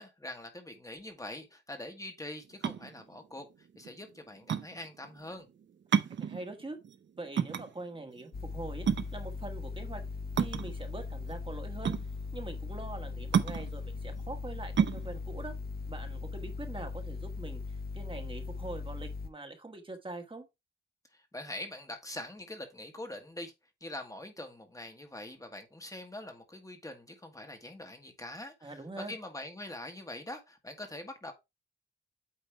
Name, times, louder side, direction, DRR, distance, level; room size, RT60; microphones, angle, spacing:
voice 1, 0.0-3.5 3.7-5.5 21.1-23.5 23.8-31.3, left 1 dB, 20° left, 1.4 m, -44 dB
sound 1, 2.4-16.8, right 7 dB, 80° right, 0.7 m, -33 dB
voice 2, 6.2-6.8 7.2-8.9 9.1-10.0 10.4-11.9 12.3-15.5 15.9-20.5 28.6-29.1, right 2 dB, 30° right, 1.5 m, -43 dB
sound 2, 8.3-19.3, left 4 dB, 55° left, 0.8 m, -39 dB
8.7 x 3.0 x 4.5 m
wide cardioid pair, 105°, 19 cm